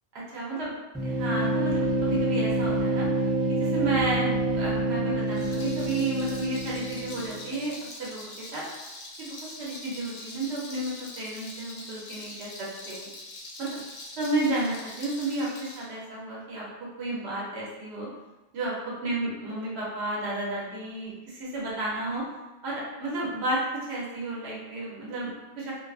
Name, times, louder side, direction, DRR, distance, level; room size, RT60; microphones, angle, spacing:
voice 1, 0.1-0.7 1.0-3.1 3.5-7.7 8.0-8.6 9.2-13.1 13.6-13.8 14.2-18.1 18.5-22.2 22.6-25.7, right 2 dB, 90° right, -5 dB, 1.0 m, -32 dB
sound 1, 0.9-7.6, right 1 dB, ahead, 0.3 m, -27 dB
Rattle, 5.2-15.9, left 2 dB, 75° left, 0.8 m, -43 dB
2.5 x 2.3 x 2.4 m, 1.0 s
omnidirectional pair, 1.1 m